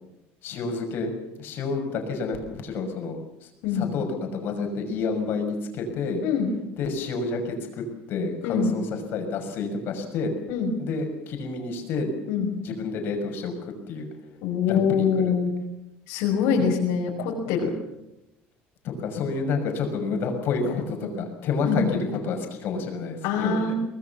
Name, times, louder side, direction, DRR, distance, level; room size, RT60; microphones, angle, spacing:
voice 1, 0.4-3.5 3.7-6.2 6.8-10.3 10.8-12.1 12.6-14.1 14.6-15.3 18.8-23.7, left 4 dB, 50° left, 4 dB, 6.2 m, -29 dB
voice 2, 8.4-8.7 10.5-10.7 12.3-12.5 14.4-15.5 16.1-17.7 21.6-21.9 23.2-23.7, left 6 dB, 85° left, -1 dB, 5.4 m, -24 dB
24.0 x 20.0 x 7.1 m, 0.90 s
cardioid pair, 155°, 5 cm